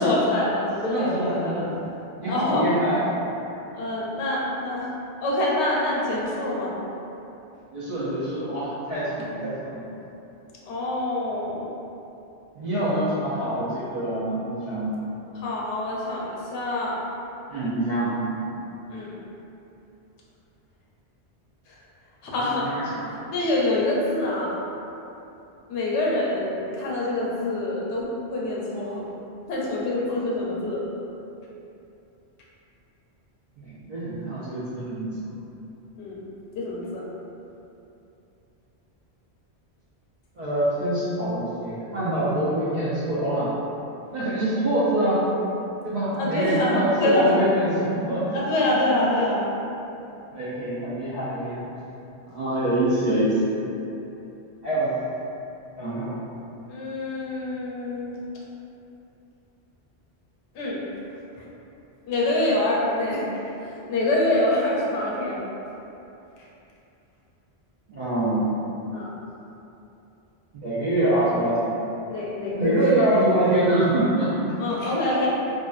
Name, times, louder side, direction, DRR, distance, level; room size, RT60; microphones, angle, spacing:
voice 1, 0.0-1.6 2.3-2.6 3.7-4.9 5.2-6.7 10.6-11.7 15.3-17.0 18.9-19.2 22.2-22.7 23.3-24.6 25.7-28.0 28.3-29.0 29.5-30.9 36.0-36.2 36.6-37.0 46.2-47.4 48.3-49.4 56.7-58.2 60.5-60.8 62.1-63.3 63.6-65.4 68.9-69.1 72.1-73.0 74.6-75.3, left 1 dB, 85° left, -5 dB, 0.9 m, -25 dB
voice 2, 0.8-1.7 2.2-3.3 7.7-9.9 12.6-15.0 17.5-18.4 22.6-23.1 33.6-35.4 40.4-43.5 44.1-45.3 45.8-48.3 48.7-49.0 50.3-51.7 52.3-53.5 54.6-55.0 55.8-56.2 67.9-68.5 70.5-71.8 72.5-74.3, right 1 dB, 55° right, -10 dB, 0.5 m, -25 dB
2.4 x 2.2 x 2.3 m, 2.9 s
omnidirectional pair, 1.1 m